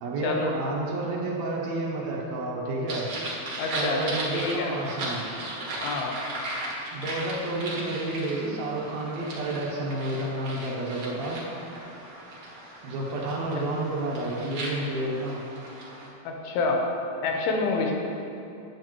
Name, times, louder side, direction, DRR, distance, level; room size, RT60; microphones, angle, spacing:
voice 1, 0.0-3.1 3.8-5.2 6.9-11.4 12.8-15.4, right 2 dB, 70° right, -3 dB, 1.7 m, -30 dB
sound 1, 2.9-16.1, right 1 dB, 55° right, 1.5 m, -37 dB
voice 2, 3.6-4.7 5.8-6.2 16.3-16.8 17.2-17.9, left 3 dB, 85° left, 1 dB, 2.8 m, -27 dB
9.8 x 8.8 x 3.1 m, 2.7 s
omnidirectional pair, 4.3 m